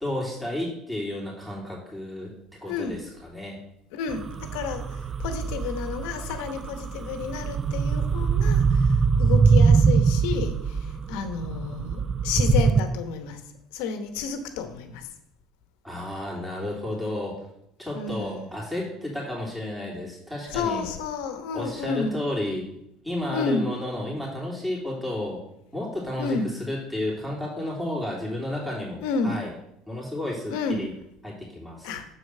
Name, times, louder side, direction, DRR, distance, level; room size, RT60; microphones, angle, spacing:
voice 1, 0.0-2.3 2.6-3.6 15.8-17.4 17.8-20.9 21.5-22.7 23.0-25.4 25.7-29.5 29.9-30.9 31.2-31.9, left 1 dB, 5° right, -5 dB, 3.0 m, -32 dB
voice 2, 2.7-3.0 3.9-13.4 13.7-15.1 17.9-18.5 20.5-22.1 23.3-23.6 26.2-26.5 29.0-29.3 30.5-30.9 31.8-32.1, left 5 dB, 75° left, 8 dB, 1.0 m, -31 dB
sound 1, 4.1-12.8, right 5 dB, 35° right, 0.5 m, -22 dB
6.3 x 4.8 x 6.6 m, 0.78 s
supercardioid pair, 85°, 0 cm